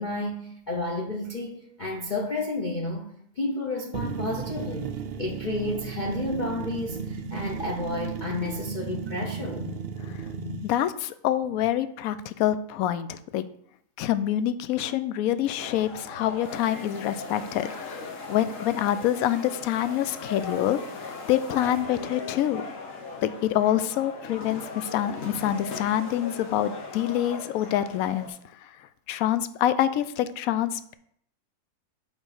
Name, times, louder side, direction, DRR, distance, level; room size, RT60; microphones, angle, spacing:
voice 1, 0.0-4.9 5.2-9.7, left 2 dB, 40° left, 0.7 m, -31 dB
sound 1, 3.9-10.7, right 6 dB, 75° right, 0.5 m, -34 dB
voice 2, 10.6-13.4 14.0-22.6 23.2-28.3 28.6-28.7 29.1-30.9, left 11 dB, 70° left, 1.0 m, -26 dB
sound 2, 15.5-28.3, left 4 dB, 55° left, 1.5 m, -38 dB
5.4 x 5.2 x 6.4 m
omnidirectional pair, 1.7 m